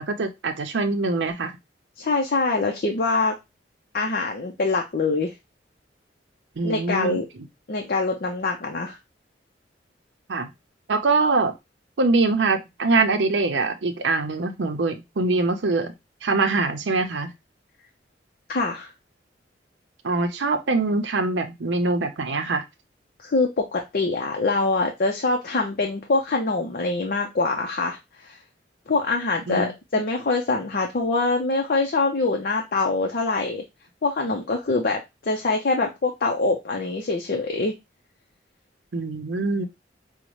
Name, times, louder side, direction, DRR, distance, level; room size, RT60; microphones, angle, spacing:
voice 1, 0.0-1.5 6.6-7.2 10.3-10.5 10.9-11.5 12.0-15.9 16.2-17.3 20.0-22.6 29.5-29.7 38.9-39.7, right 3 dB, 80° right, 7 dB, 0.6 m, -23 dB
voice 2, 2.0-3.3 3.9-5.3 6.6-7.2 7.7-9.0 18.5-18.9 23.2-28.0 28.2-28.3 28.9-33.6 34.0-37.7, left 3 dB, 55° left, 2 dB, 0.6 m, -24 dB
5.1 x 2.1 x 3.0 m, 0.22 s
head